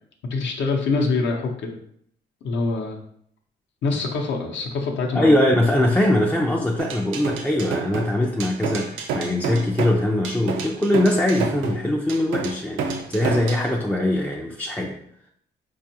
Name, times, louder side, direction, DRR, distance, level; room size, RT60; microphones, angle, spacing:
voice 1, 0.3-1.8 2.4-3.0 3.8-5.4, left 3 dB, 70° left, 2 dB, 0.7 m, -24 dB
voice 2, 5.1-15.0, left 1 dB, 10° left, -1 dB, 0.3 m, -21 dB
sound 1, 6.8-13.7, right 5 dB, 90° right, 0.5 m, -29 dB
4.4 x 2.4 x 2.8 m, 0.69 s
cardioid pair, 90°, 20 cm